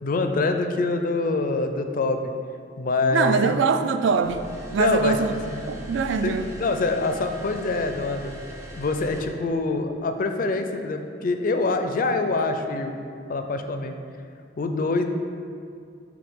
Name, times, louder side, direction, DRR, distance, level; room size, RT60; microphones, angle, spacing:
voice 1, 0.0-2.3 2.8-3.6 4.8-5.2 5.5-5.6 6.2-8.3 8.7-13.0 13.3-13.9 14.6-15.0, left 3 dB, 45° left, 6 dB, 0.4 m, -25 dB
voice 2, 3.1-5.3 5.7-6.5, right 5 dB, 65° right, 9 dB, 0.3 m, -23 dB
sound 1, 4.2-9.4, equal, 15° right, 0.6 m, -40 dB
8.6 x 3.2 x 3.6 m, 2.3 s
head